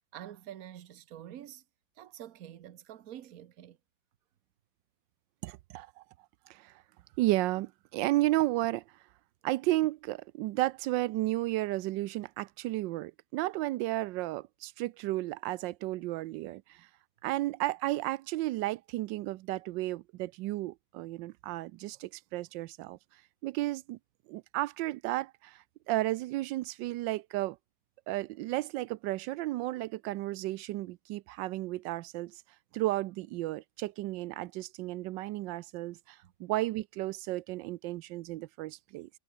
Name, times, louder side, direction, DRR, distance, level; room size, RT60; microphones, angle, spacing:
voice 1, 0.1-1.6 2.0-3.8 36.2-36.3, right 11 dB, 55° right, 1.3 m, -47 dB
voice 2, 5.4-6.0 6.5-6.7 7.2-8.8 9.4-16.9 17.2-23.0 23.4-24.0 24.3-27.6 28.1-32.4 32.7-39.1, right 17 dB, 90° right, 1.3 m, -33 dB
omnidirectional pair, 1.9 m